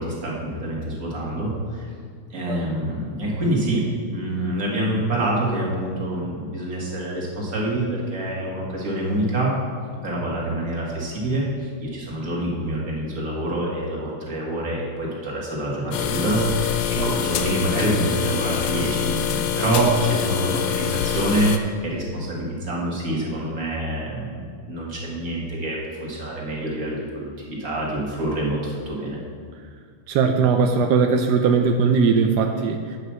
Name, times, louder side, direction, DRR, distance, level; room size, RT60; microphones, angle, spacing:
voice 1, 0.0-1.9 2.3-9.5 10.0-29.2, right 1 dB, 40° right, -4 dB, 2.3 m, -26 dB
sound 1, 15.9-21.6, left 9 dB, 80° left, 1.4 m, -25 dB
voice 2, 30.1-33.0, right 5 dB, 75° right, 4 dB, 0.9 m, -19 dB
9.0 x 5.6 x 6.2 m, 2.1 s
omnidirectional pair, 2.4 m